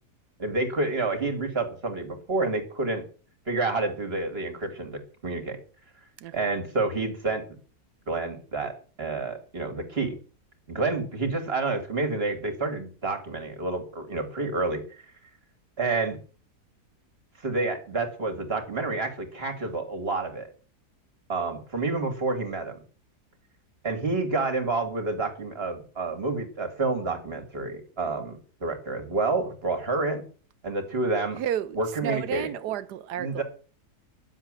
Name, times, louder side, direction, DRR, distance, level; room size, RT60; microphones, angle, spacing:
voice 1, 0.4-3.0 3.5-5.6 6.3-7.4 8.1-10.1 10.7-14.8 15.8-16.2 17.4-20.5 21.3-22.8 23.8-30.2 30.6-31.4 31.7-32.5 33.2-33.4, right 3 dB, 40° right, 2.7 m, -29 dB
voice 2, 6.2-6.6 31.4-33.4, right 10 dB, 90° right, 1.4 m, -32 dB
11.0 x 7.5 x 7.6 m
omnidirectional pair, 1.7 m